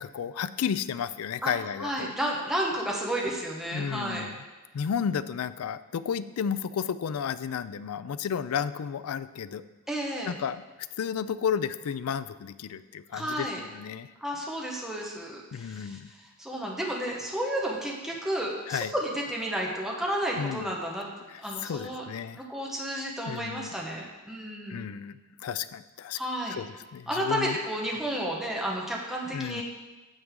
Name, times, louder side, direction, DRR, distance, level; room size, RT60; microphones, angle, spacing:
voice 1, 0.0-2.1 3.7-4.4 4.7-9.6 10.3-10.6 11.0-14.1 15.5-16.1 18.7-18.9 20.4-20.7 21.3-22.4 23.3-23.7 24.7-26.2 26.6-26.7 26.9-27.6 29.3-29.6, left 7 dB, 90° left, 15 dB, 0.4 m, -32 dB
voice 2, 1.8-4.3 9.9-10.4 13.1-13.6 14.2-22.1 22.4-24.8 26.1-26.6 27.1-29.6, right 1 dB, ahead, -2 dB, 1.1 m, -32 dB
8.9 x 7.8 x 3.7 m, 1.2 s
head